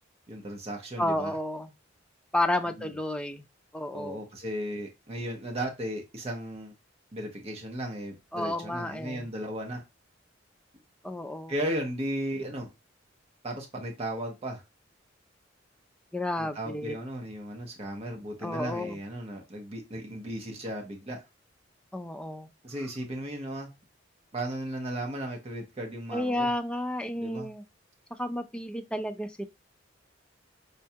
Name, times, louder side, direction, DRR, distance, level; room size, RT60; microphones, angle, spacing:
voice 1, 0.3-1.3 2.8-2.9 3.9-6.7 7.1-9.8 11.5-12.7 13.4-14.6 16.4-21.2 22.6-23.7 24.3-26.5 27.1-27.5, right 1 dB, 30° right, 0.7 m, -35 dB
voice 2, 1.0-1.7 2.3-3.4 3.7-4.2 8.3-9.3 11.0-11.5 16.1-16.9 18.4-19.0 21.9-22.5 26.1-27.6 28.1-29.4, left 1 dB, 5° left, 0.3 m, -31 dB
5.2 x 2.3 x 2.7 m
head